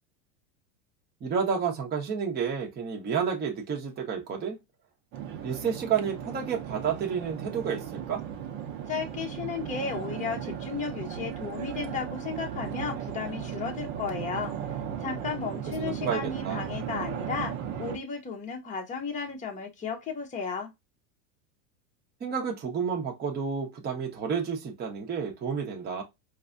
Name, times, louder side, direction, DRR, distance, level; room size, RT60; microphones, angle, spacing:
voice 1, 1.2-4.6 5.4-8.2 15.8-16.6 22.2-26.0, right 6 dB, 20° right, 0.9 m, -30 dB
sound 1, 5.1-18.0, right 9 dB, 45° right, 0.9 m, -36 dB
voice 2, 8.9-20.7, left 5 dB, 15° left, 0.8 m, -34 dB
4.6 x 2.4 x 2.5 m
supercardioid pair, 125°, 47 cm